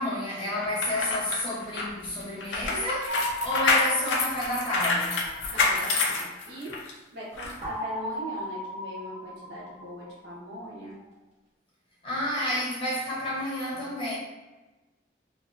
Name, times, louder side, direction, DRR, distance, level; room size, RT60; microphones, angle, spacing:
voice 1, 0.0-5.3 12.0-14.2, left 1 dB, 30° left, -6 dB, 0.7 m, -30 dB
sound 1, 0.6-6.9 7.4-7.5, left 3 dB, 85° left, 0.4 m, -27 dB
sound 2, 3.1-5.9 7.6-10.4, left 1 dB, 35° right, 0.9 m, -36 dB
voice 2, 5.5-6.7 7.1-11.0, right 1 dB, 65° right, -6 dB, 0.8 m, -40 dB
2.6 x 2.4 x 2.4 m, 1.1 s
head